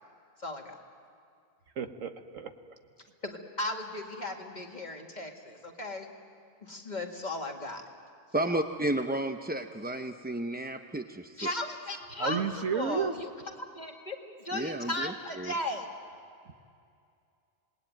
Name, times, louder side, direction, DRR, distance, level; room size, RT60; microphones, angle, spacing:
voice 1, 0.4-0.8 3.2-6.1 6.6-7.8 8.3-8.5 11.4-12.5 12.7-13.3 13.7-15.9, left 1 dB, 35° left, 2 dB, 2.1 m, -36 dB
voice 2, 1.8-2.5 12.2-13.1, right 6 dB, 75° right, 8 dB, 1.5 m, -31 dB
voice 3, 8.3-11.5 14.5-15.5, right 1 dB, 15° right, 6 dB, 0.4 m, -32 dB
27.0 x 19.5 x 9.2 m, 2.4 s
omnidirectional pair, 1.4 m